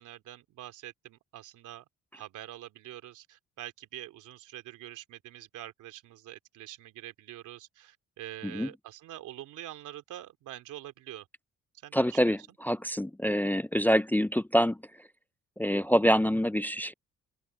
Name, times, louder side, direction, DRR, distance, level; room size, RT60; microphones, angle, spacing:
voice 1, 0.0-1.8 2.1-11.3 11.8-12.4, right 13 dB, 85° right, 2.8 m, -45 dB
voice 2, 11.9-14.8 15.6-16.9, equal, 5° left, 0.5 m, -26 dB
open air
cardioid pair, 90°, 30 cm